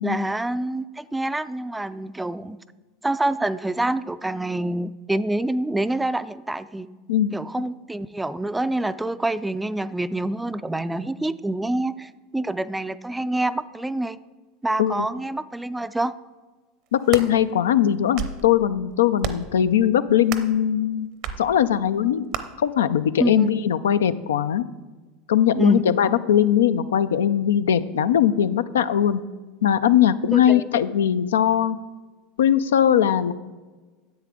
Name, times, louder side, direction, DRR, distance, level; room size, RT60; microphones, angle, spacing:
voice 1, 0.0-2.6 3.0-6.9 7.3-14.2 14.6-16.1 23.2-23.5 25.5-25.8 30.3-30.7, right 1 dB, 10° right, 15 dB, 0.3 m, -26 dB
voice 2, 7.1-7.4 14.8-15.1 16.9-21.1 21.4-22.2 22.6-24.6 25.3-29.2 29.6-31.8 32.4-33.3, left 10 dB, 90° left, 13 dB, 0.4 m, -20 dB
sound 1, 16.9-17.3 17.9-18.5 19.2-19.5 20.3-20.6 21.2-21.4 22.3-22.4, right 8 dB, 60° right, 0.7 m, -30 dB
10.0 x 7.6 x 3.7 m, 1.3 s
hypercardioid pair, 95°, 0 cm